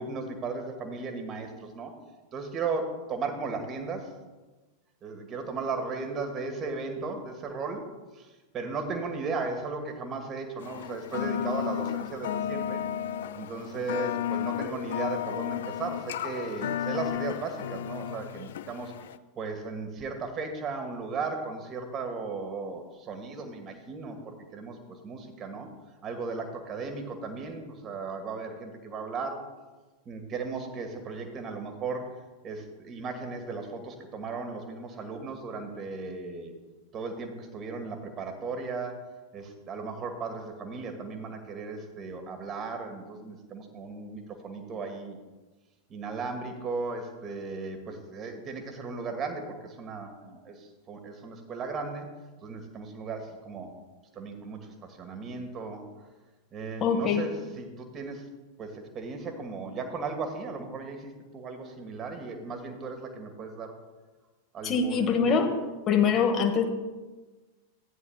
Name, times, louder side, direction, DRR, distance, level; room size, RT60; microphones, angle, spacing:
voice 1, 0.0-1.9 2.3-4.2 5.0-12.8 13.3-18.9 19.3-25.7 26.0-29.4 30.0-36.5 36.9-45.2 45.9-52.1 52.4-53.7 54.1-55.9 56.5-58.3 58.6-63.8 64.5-65.4 66.1-66.2, right 4 dB, 30° right, 5 dB, 1.6 m, -36 dB
sound 1, 10.6-19.2, left 10 dB, 60° left, 0.3 m, -33 dB
voice 2, 56.8-57.2 64.6-65.5 65.9-66.6, left 6 dB, 30° left, 5 dB, 1.2 m, -23 dB
14.5 x 9.7 x 2.4 m, 1.2 s
figure-of-eight pair, 90°, 0 cm